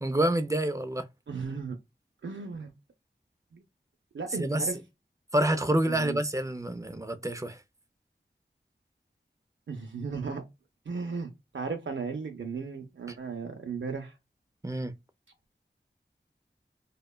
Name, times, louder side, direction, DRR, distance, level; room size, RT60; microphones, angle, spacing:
voice 1, 0.0-1.1 4.4-4.6 5.3-7.6 14.6-14.9, right 1 dB, 15° right, 0.4 m, -27 dB
voice 2, 1.3-1.8 2.2-2.7 3.5-3.6 4.1-4.8 5.8-6.2 9.7-10.4 10.9-14.2, right 5 dB, 85° right, 0.5 m, -35 dB
2.8 x 2.2 x 2.2 m
wide cardioid pair, 50°, 19 cm